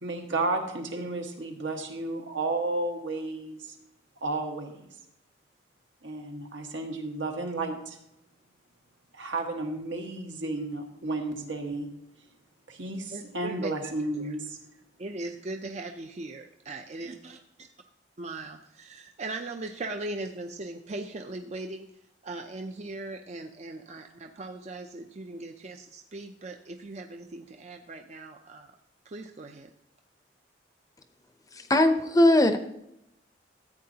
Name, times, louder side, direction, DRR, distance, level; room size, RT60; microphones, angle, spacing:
voice 1, 0.0-3.7 4.2-4.9 6.0-8.0 9.1-11.9 12.7-14.6, right 2 dB, 85° right, 2 dB, 1.6 m, -32 dB
voice 2, 13.1-13.7 14.1-14.4 15.0-17.3 18.2-21.9 22.2-28.7 29.1-29.7, right 2 dB, 35° right, 4 dB, 0.5 m, -39 dB
voice 3, 31.7-32.6, left 1 dB, 20° left, 8 dB, 0.6 m, -19 dB
14.0 x 8.6 x 2.8 m, 0.82 s
head